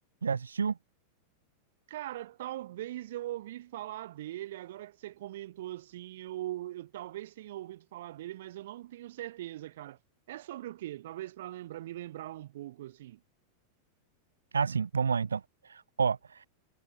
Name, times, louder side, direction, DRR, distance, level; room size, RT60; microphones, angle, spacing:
voice 1, 0.2-0.7 14.5-16.5, right 6 dB, 75° right, 1.6 m, -30 dB
voice 2, 1.9-10.0 10.3-13.2, right 14 dB, 55° right, 7.7 m, -41 dB
figure-of-eight pair, 90°, 0 cm